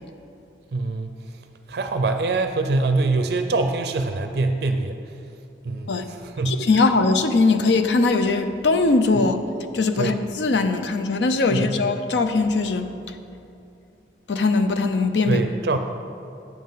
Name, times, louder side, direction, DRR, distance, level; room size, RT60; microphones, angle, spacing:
voice 1, 0.7-1.1 1.7-5.0 5.6-6.6 9.9-10.2 11.5-11.9 15.3-15.8, right 3 dB, 60° right, 6 dB, 0.4 m, -24 dB
voice 2, 6.5-9.4 9.7-12.9 14.3-15.4, left 3 dB, 80° left, 8 dB, 0.5 m, -20 dB
9.4 x 7.4 x 3.9 m, 2.6 s
head